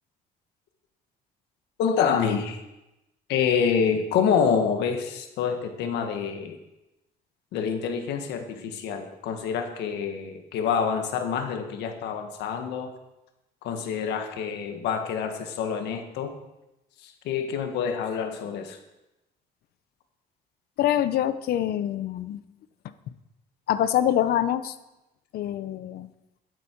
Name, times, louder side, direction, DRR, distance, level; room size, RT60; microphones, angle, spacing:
voice 1, 1.8-2.6 3.3-6.6 7.5-12.9 13.6-16.3 17.0-18.8, left 7 dB, 85° left, 6 dB, 1.8 m, -27 dB
voice 2, 20.8-22.4 23.7-24.8 25.3-26.1, left 11 dB, 65° left, 13 dB, 0.9 m, -25 dB
12.5 x 11.5 x 4.7 m, 0.96 s
cardioid pair, 110°, 17 cm